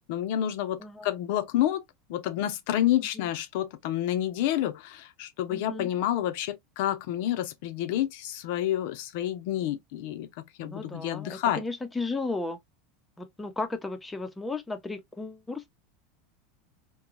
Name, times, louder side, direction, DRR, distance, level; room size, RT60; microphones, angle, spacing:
voice 1, 0.1-1.8 2.1-10.3 10.6-11.6, left 12 dB, 65° left, 0.7 m, -29 dB
voice 2, 5.5-5.9 10.6-12.6 13.2-15.7, left 3 dB, 15° left, 0.8 m, -35 dB
3.7 x 2.3 x 2.8 m
supercardioid pair, 115°, 0 cm